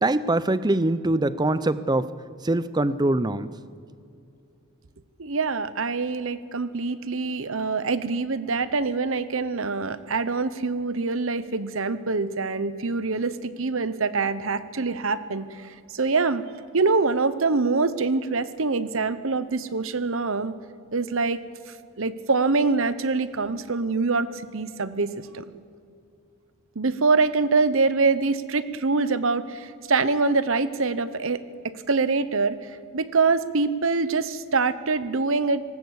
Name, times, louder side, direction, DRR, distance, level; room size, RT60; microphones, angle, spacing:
voice 1, 0.0-2.1 2.4-3.5, right 2 dB, 20° right, 15 dB, 0.6 m, -23 dB
voice 2, 5.2-16.4 16.7-20.5 20.9-21.4 22.0-25.5 26.7-35.6, right 4 dB, 65° right, 14 dB, 1.0 m, -25 dB
19.0 x 18.5 x 8.3 m, 2.6 s
head